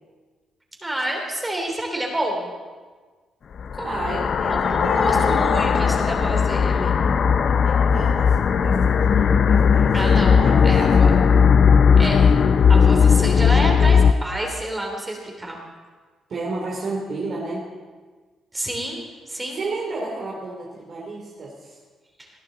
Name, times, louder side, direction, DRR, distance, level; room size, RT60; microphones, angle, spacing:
voice 1, 0.8-2.5 3.7-4.0 4.6-7.0 9.9-11.3 12.0-12.3 12.7-15.6 18.5-19.6, right 1 dB, 15° right, 1 dB, 3.2 m, -28 dB
sound 1, 3.6-14.1, left 6 dB, 50° left, 0.5 m, -17 dB
voice 2, 3.8-6.4 7.5-9.9 10.3-11.0 16.3-17.6 19.5-21.8, right 3 dB, 55° right, -4 dB, 2.9 m, -32 dB
20.0 x 11.5 x 3.9 m, 1.4 s
cardioid pair, 90°, 0 cm